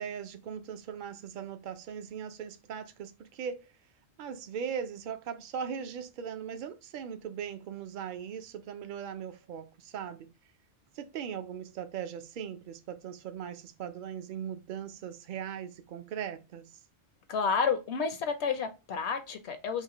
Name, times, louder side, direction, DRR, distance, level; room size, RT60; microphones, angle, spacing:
voice 1, 0.0-3.7 4.2-10.3 10.9-16.8, right 8 dB, 55° right, 0.6 m, -39 dB
voice 2, 17.3-19.8, left 5 dB, 75° left, 1.0 m, -30 dB
5.6 x 2.1 x 2.8 m
omnidirectional pair, 1.1 m